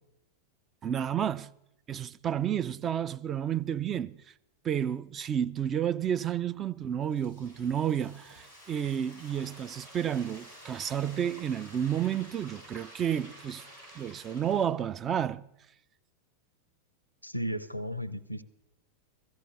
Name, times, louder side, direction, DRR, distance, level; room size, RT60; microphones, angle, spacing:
voice 1, 0.8-1.5 1.9-4.2 4.6-13.6 14.0-15.4, right 9 dB, 25° right, 0.4 m, -31 dB
Frying (food), 6.8-14.6, equal, 85° right, 6.9 m, -51 dB
voice 2, 17.2-18.4, equal, 90° left, 0.5 m, -34 dB
16.5 x 14.5 x 3.3 m
figure-of-eight pair, 90°, 0 cm